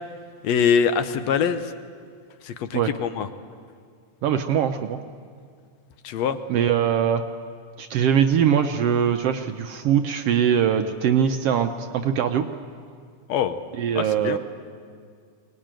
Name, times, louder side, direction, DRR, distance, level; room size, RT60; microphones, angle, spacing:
voice 1, 0.4-1.7 2.4-3.3 6.0-6.4 13.3-13.6 14.0-14.4, left 7 dB, 70° left, 10 dB, 1.9 m, -23 dB
voice 2, 4.2-5.0 6.5-7.2 7.8-12.5 13.7-14.4, right 8 dB, 70° right, 7 dB, 1.5 m, -22 dB
23.0 x 19.0 x 9.0 m, 2.1 s
omnidirectional pair, 3.3 m